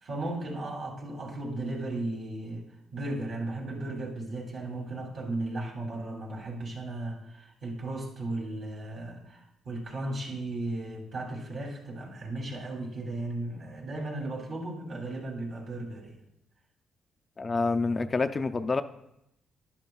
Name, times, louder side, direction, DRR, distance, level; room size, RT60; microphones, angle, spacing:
voice 1, 0.0-2.6 2.9-16.2, right 2 dB, 55° right, -1 dB, 2.7 m, -35 dB
voice 2, 17.4-18.8, left 3 dB, 30° left, 9 dB, 0.4 m, -27 dB
12.0 x 11.0 x 2.3 m, 0.80 s
cardioid pair, 90°, 0 cm